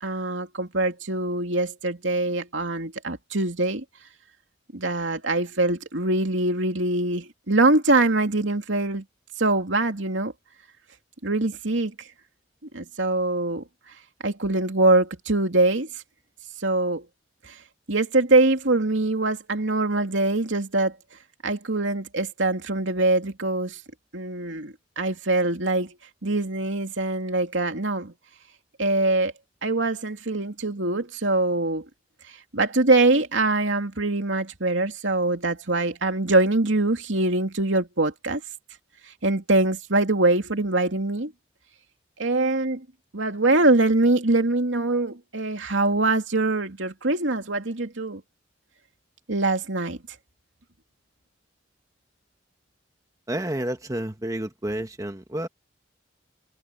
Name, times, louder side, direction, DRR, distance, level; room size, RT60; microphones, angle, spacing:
voice 1, 0.0-3.8 4.7-9.0 9.4-10.3 11.2-11.9 12.7-13.6 14.2-15.9 16.6-17.0 17.5-17.6 17.9-20.9 21.4-23.8 24.1-25.9 26.2-28.1 28.8-29.3 29.6-31.8 32.5-38.4 39.2-41.3 42.2-42.8 43.1-48.2 49.3-50.0, right 2 dB, 80° right, 2.7 m, -23 dB
voice 2, 53.3-55.5, right 1 dB, 20° right, 1.2 m, -30 dB
head